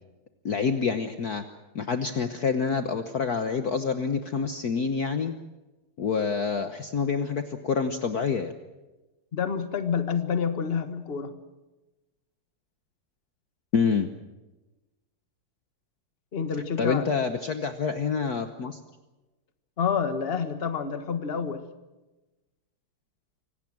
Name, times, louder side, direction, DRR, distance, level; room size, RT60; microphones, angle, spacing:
voice 1, 0.4-1.4 1.7-5.3 6.0-8.5 13.7-14.1 16.8-18.8, left 5 dB, 50° left, 8 dB, 1.4 m, -27 dB
voice 2, 9.3-11.3 16.3-17.1 19.8-21.6, left 6 dB, 30° left, 9 dB, 1.5 m, -28 dB
25.5 x 18.0 x 7.6 m, 1.1 s
omnidirectional pair, 2.3 m